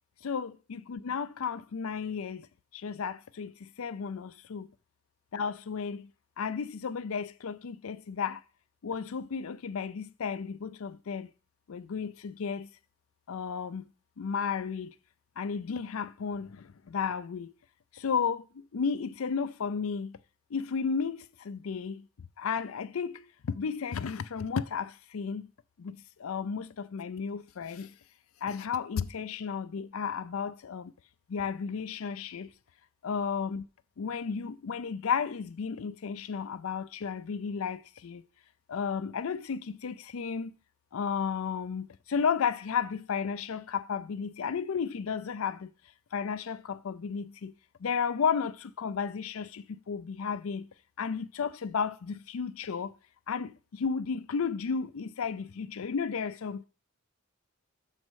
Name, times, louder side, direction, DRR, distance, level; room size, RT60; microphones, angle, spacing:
voice 1, 0.2-2.5 2.7-4.7 5.3-6.1 6.4-8.4 8.8-11.3 11.7-12.7 13.3-13.8 14.2-14.9 15.4-17.5 17.9-18.4 18.7-20.2 20.5-22.0 22.4-25.5 25.8-27.9 28.4-30.9 31.3-32.5 33.0-33.6 34.0-38.3 38.7-40.5 40.9-45.7 46.1-47.5 47.8-50.7 51.0-52.9 53.3-56.6, left 6 dB, 75° left, 0.5 m, -33 dB
6.2 x 4.2 x 6.3 m
head